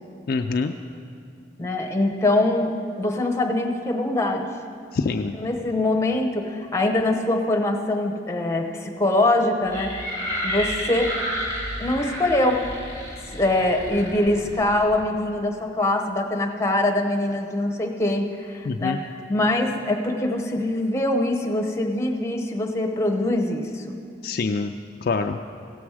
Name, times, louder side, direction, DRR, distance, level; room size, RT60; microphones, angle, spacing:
voice 1, 0.3-0.7 4.9-5.3 18.6-19.0 24.2-24.7 25.0-25.4, left 4 dB, 50° left, 5 dB, 0.3 m, -25 dB
voice 2, 1.6-4.4 5.4-9.9 10.4-11.1 11.8-12.6 13.3-19.0 19.3-24.0, left 1 dB, 15° left, 1 dB, 0.9 m, -23 dB
sound 1, 9.7-14.9, equal, 25° right, 2.8 m, -31 dB
16.5 x 7.2 x 4.8 m, 2.4 s
head